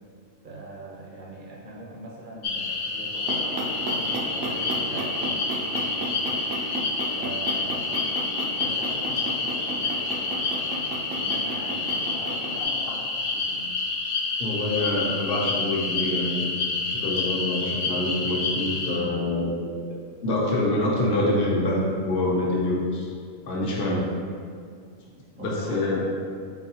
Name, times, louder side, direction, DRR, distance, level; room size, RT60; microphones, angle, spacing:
voice 1, 0.4-6.5 7.2-7.9 8.5-13.7 25.4-25.9, right 1 dB, 50° right, -3 dB, 0.8 m, -42 dB
sound 1, 2.4-19.0, left 3 dB, 80° left, 1.0 m, -28 dB
sound 2, 3.0-12.6, right 2 dB, 75° right, 1.0 m, -33 dB
voice 2, 14.4-16.5 16.9-19.5 19.9-23.1 23.5-24.1 25.3-26.0, left 1 dB, 55° left, -3 dB, 1.0 m, -26 dB
4.5 x 4.0 x 2.8 m, 2.1 s
omnidirectional pair, 1.3 m